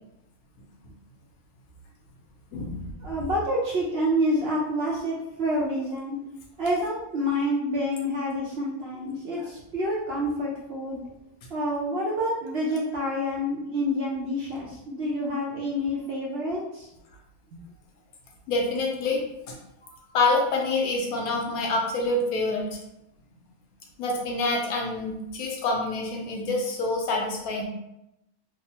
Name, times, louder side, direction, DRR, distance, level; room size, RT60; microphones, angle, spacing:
voice 1, 2.6-6.2 6.6-11.0 11.5-16.9 17.5-17.6, equal, 60° right, -4 dB, 0.7 m, -28 dB
voice 2, 18.5-19.6 19.8-22.8 24.0-27.6, left 2 dB, 80° left, 0 dB, 1.1 m, -27 dB
3.4 x 2.0 x 2.7 m, 0.86 s
omnidirectional pair, 1.5 m